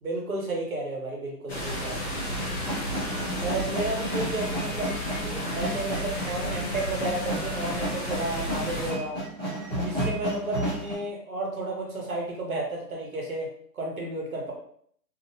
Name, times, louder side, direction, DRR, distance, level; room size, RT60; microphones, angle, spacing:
voice 1, 0.0-2.1 3.4-5.0 5.5-9.2 9.7-13.5 13.7-14.5, right 2 dB, 55° right, -1 dB, 0.9 m, -32 dB
sound 1, 1.5-8.9, equal, 40° left, 0.5 m, -32 dB
sound 2, 2.1-10.9, right 1 dB, 25° right, 0.7 m, -33 dB
2.6 x 2.0 x 2.6 m, 0.63 s
hypercardioid pair, 165°, 49 cm